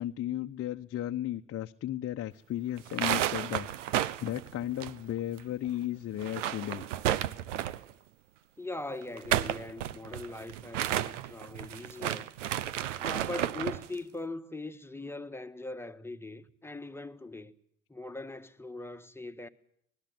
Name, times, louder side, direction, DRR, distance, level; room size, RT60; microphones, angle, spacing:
voice 1, 0.0-6.8, left 12 dB, 40° left, 1.0 m, -35 dB
sound 1, 2.8-5.4 5.7-5.8 6.1-7.9 9.0-13.9, right 12 dB, 80° right, 1.0 m, -32 dB
voice 2, 8.6-12.3 13.0-17.5 17.9-19.5, left 2 dB, 5° left, 1.6 m, -41 dB
25.0 x 20.0 x 7.8 m
hypercardioid pair, 75°, 36 cm